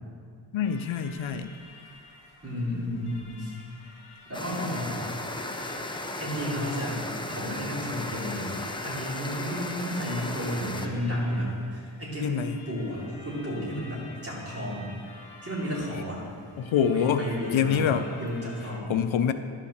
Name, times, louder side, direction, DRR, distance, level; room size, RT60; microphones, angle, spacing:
voice 1, 0.5-1.5 4.5-4.6 12.2-12.5 16.6-17.3 17.5-18.1 18.9-19.3, left 8 dB, 75° left, 9 dB, 0.6 m, -25 dB
sound 1, 0.6-18.8, left 2 dB, 55° left, 2.0 m, -50 dB
voice 2, 2.4-3.5 4.3-5.1 6.2-8.6 8.8-14.9 15.4-16.2 16.9-18.9, equal, 30° right, -6 dB, 2.9 m, -32 dB
sound 2, 4.3-10.9, left 2 dB, 10° left, 0.5 m, -35 dB
11.5 x 5.8 x 6.5 m, 2.2 s
wide cardioid pair, 150°, 47 cm